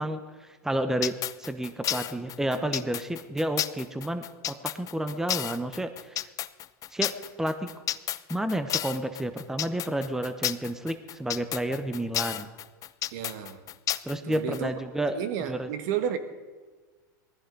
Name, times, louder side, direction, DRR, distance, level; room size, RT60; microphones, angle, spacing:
voice 1, 0.0-6.3 6.9-7.7 8.3-12.5 14.0-15.2 15.5-15.7, right 1 dB, 5° right, 0.9 m, -31 dB
sound 1, 1.0-14.6, left 12 dB, 35° left, 0.5 m, -31 dB
voice 2, 13.1-13.6 14.2-14.7 15.1-16.2, right 10 dB, 65° right, 1.4 m, -32 dB
20.0 x 14.5 x 3.9 m
hypercardioid pair, 105°, 10 cm